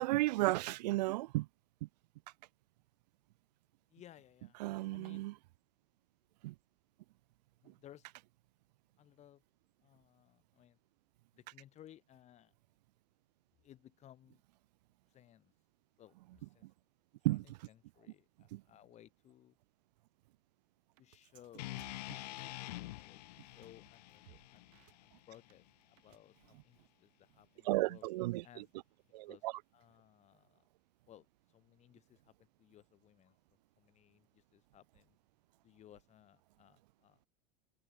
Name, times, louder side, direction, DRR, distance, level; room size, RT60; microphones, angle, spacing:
voice 1, 0.0-1.5 1.8-1.9 4.6-5.3 6.4-6.5 16.6-16.7 17.2-17.4 18.5-18.6 27.6-28.6 29.1-29.5, right 19 dB, 80° right, 0.5 m, -33 dB
voice 2, 3.9-4.6 4.9-5.3 7.6-8.1 9.0-9.4 9.8-10.8 11.3-12.5 13.6-14.4 15.1-15.5 16.0-16.6 17.3-19.6 21.0-21.8 22.3-24.7 25.0-28.1 28.4-28.7 29.3-29.5 29.7-30.7 31.1-33.4 33.8-35.2 35.6-37.3, left 12 dB, 35° left, 2.9 m, -61 dB
sound 1, 21.0-21.2 21.4-22.4 22.7-23.0 23.6-23.7 23.9-25.5 25.8-26.2, right 26 dB, 65° right, 4.3 m, -63 dB
sound 2, 21.6-25.8, left 18 dB, 80° left, 2.1 m, -47 dB
supercardioid pair, 135°, 21 cm